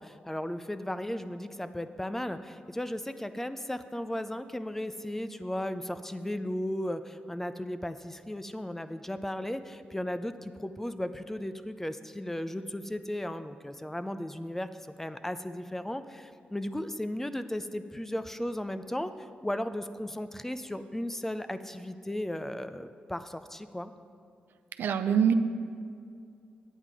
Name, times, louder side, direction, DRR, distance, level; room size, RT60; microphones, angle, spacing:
voice 1, 0.0-23.9, left 1 dB, 10° left, 11 dB, 0.5 m, -35 dB
voice 2, 24.8-25.3, right 8 dB, 85° right, 9 dB, 0.4 m, -24 dB
9.1 x 8.8 x 4.8 m, 2.4 s
cardioid pair, 75°, 3 cm